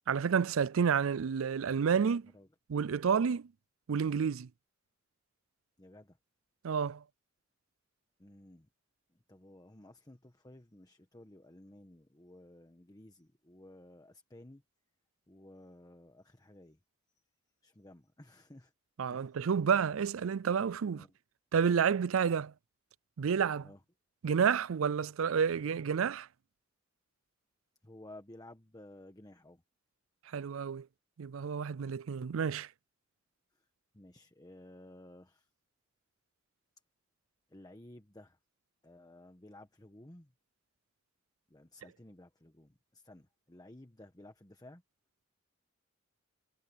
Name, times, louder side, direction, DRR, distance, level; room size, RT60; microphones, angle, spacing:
voice 1, 0.1-2.3 2.7-3.5 3.9-4.5 6.6-7.0 19.0-21.1 21.5-22.5 23.2-23.7 24.2-26.3 30.3-30.9 31.2-32.7, right 6 dB, 85° right, 0.4 m, -30 dB
voice 2, 5.8-6.2 8.2-8.7 9.1-14.6 15.3-16.8 17.6-18.7 19.1-19.4 20.9-21.1 23.6-23.8 27.8-29.6 33.9-35.5 37.5-38.4 38.8-40.3 41.5-44.8, left 1 dB, 20° left, 1.3 m, -55 dB
head